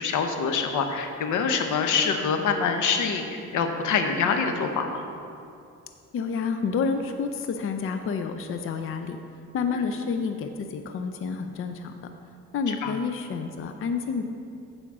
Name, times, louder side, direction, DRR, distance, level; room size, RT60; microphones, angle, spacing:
voice 1, 0.0-5.0 12.7-12.9, left 5 dB, 80° left, 6 dB, 0.9 m, -25 dB
voice 2, 6.1-9.2 9.5-12.1 12.5-14.2, left 5 dB, 45° left, 7 dB, 0.5 m, -29 dB
8.4 x 5.1 x 6.1 m, 2.5 s
cardioid pair, 90°, 30 cm